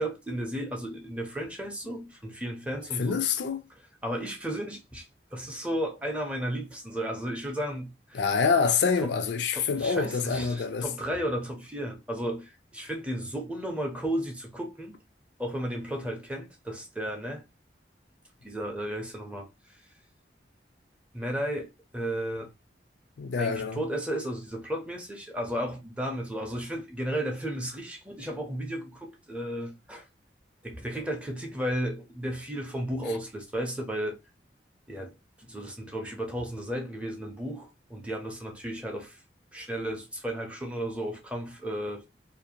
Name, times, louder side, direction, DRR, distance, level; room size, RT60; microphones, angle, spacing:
voice 1, 0.0-3.2 4.0-8.3 9.0-9.1 9.5-14.9 15.4-17.4 18.4-19.8 21.1-22.5 23.4-30.1 30.6-34.1 34.9-39.2 39.5-42.0, right 1 dB, 5° right, 0.5 m, -34 dB
voice 2, 3.0-3.6 8.1-10.9 23.2-23.8, left 5 dB, 70° left, 0.4 m, -26 dB
2.5 x 2.1 x 2.8 m
head